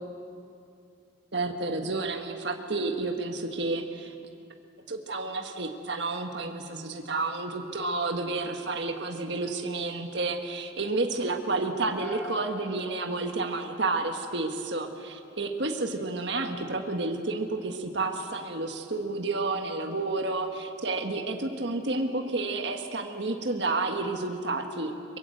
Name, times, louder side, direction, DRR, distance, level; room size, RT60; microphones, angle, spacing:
voice 1, 1.3-4.1 4.9-25.2, right 3 dB, 60° right, 4 dB, 1.5 m, -30 dB
sound 1, 12.0-14.3, left 1 dB, 10° left, 4.0 m, -45 dB
23.5 x 22.5 x 7.9 m, 2.5 s
head